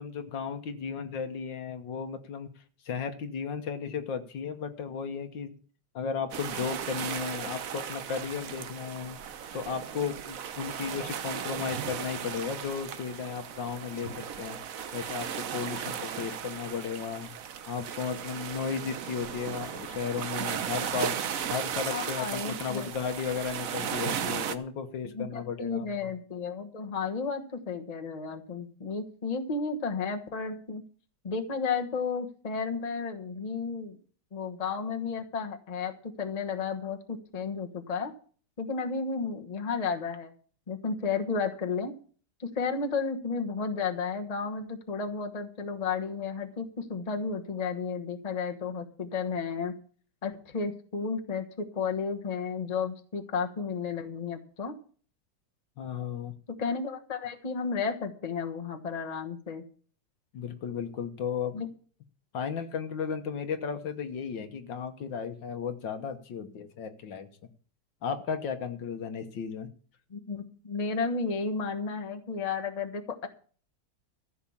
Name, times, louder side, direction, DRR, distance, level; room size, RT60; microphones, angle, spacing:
voice 1, 0.0-2.5 2.9-5.6 6.0-9.2 9.5-14.6 14.9-17.3 17.7-21.2 21.5-26.1 55.8-56.3 60.3-61.6 62.3-67.3 68.0-69.7, left 6 dB, 65° left, 8 dB, 1.8 m, -34 dB
sound 1, 6.3-24.6, right 8 dB, 55° right, 1.0 m, -36 dB
voice 2, 21.9-22.9 25.1-30.8 31.2-34.0 34.3-35.9 36.2-38.1 38.6-40.3 40.7-41.9 42.4-49.7 50.2-54.7 56.6-59.6 61.5-61.7 70.1-73.3, left 5 dB, 25° left, 4 dB, 1.1 m, -33 dB
14.5 x 6.5 x 7.2 m, 0.43 s
omnidirectional pair, 2.2 m